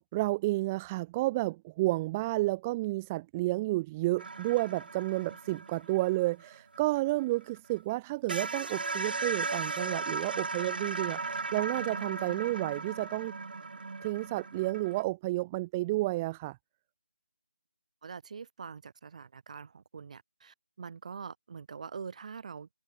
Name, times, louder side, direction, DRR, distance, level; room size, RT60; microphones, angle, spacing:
voice 1, 0.0-13.3 14.0-16.6, right 19 dB, 10° right, 0.3 m, -31 dB
sound 1, 4.2-7.6 7.9-8.0 8.3-15.0, right 4 dB, 60° right, 0.6 m, -37 dB
voice 2, 18.0-22.7, right 6 dB, 40° right, 2.3 m, -44 dB
figure-of-eight pair, 160°, 6 cm